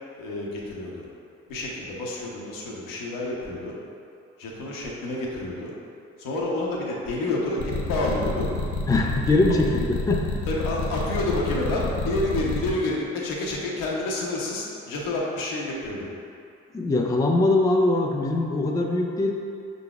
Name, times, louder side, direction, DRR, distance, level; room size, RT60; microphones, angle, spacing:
voice 1, 0.2-1.0 1.5-3.8 4.4-5.7 6.2-8.5 10.5-16.1, left 2 dB, 70° left, -3 dB, 0.9 m, -29 dB
sound 1, 7.6-12.7, left 3 dB, 90° left, 0.6 m, -28 dB
voice 2, 8.9-10.2 16.7-19.3, left 2 dB, 10° left, 1 dB, 0.4 m, -22 dB
5.5 x 3.9 x 2.4 m, 2.5 s
hypercardioid pair, 45°, 35 cm